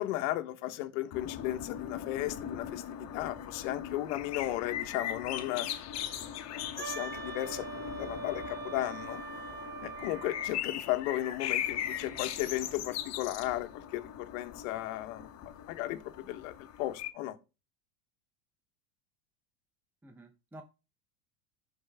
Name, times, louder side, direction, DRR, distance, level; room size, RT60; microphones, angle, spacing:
voice 1, 0.0-5.7 6.5-9.2 9.8-15.3 15.7-17.4, left 15 dB, 70° left, 1.2 m, -35 dB
sound 1, 1.1-17.1, left 10 dB, 40° left, 1.3 m, -39 dB
Wind instrument woodwind instrument, 6.8-10.6, right 5 dB, 25° right, 1.0 m, -42 dB
voice 2, 11.7-12.3 20.0-20.6, right 2 dB, 5° right, 0.8 m, -52 dB
11.5 x 4.7 x 3.6 m
supercardioid pair, 125°, 41 cm